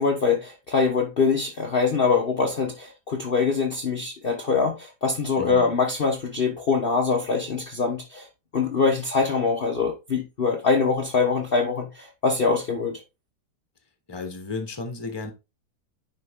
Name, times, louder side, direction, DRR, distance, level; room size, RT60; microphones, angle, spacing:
voice 1, 0.0-8.3 8.5-13.0, left 4 dB, 40° left, 1.1 m, -23 dB
voice 2, 5.4-5.8 14.1-15.3, left 3 dB, 15° left, 1.2 m, -33 dB
10.0 x 4.0 x 3.6 m
omnidirectional pair, 1.8 m